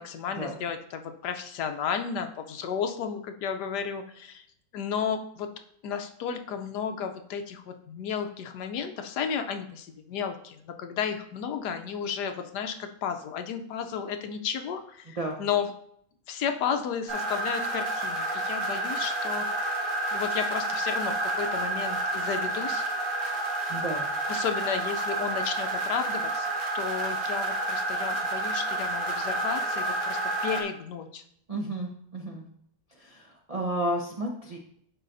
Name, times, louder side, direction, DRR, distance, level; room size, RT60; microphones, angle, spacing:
voice 1, 0.0-4.4 4.7-5.5 5.8-15.7 16.3-19.8 20.1-22.9 24.3-31.2, left 7 dB, 70° left, 7 dB, 1.1 m, -33 dB
sound 1, 17.1-30.6, right 2 dB, 75° right, 2.4 m, -30 dB
voice 2, 23.7-24.1 31.5-32.4 32.9-34.6, right 1 dB, 60° right, -1 dB, 0.3 m, -32 dB
12.0 x 4.9 x 2.6 m, 0.68 s
omnidirectional pair, 2.0 m